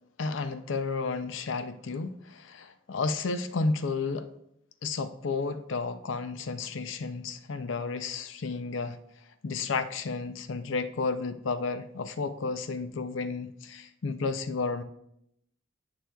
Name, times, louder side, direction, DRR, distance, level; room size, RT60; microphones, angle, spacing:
voice 1, 0.2-4.3 4.8-9.0 9.4-14.8, left 4 dB, 75° left, 11 dB, 0.5 m, -32 dB
11.0 x 7.7 x 2.3 m, 0.77 s
head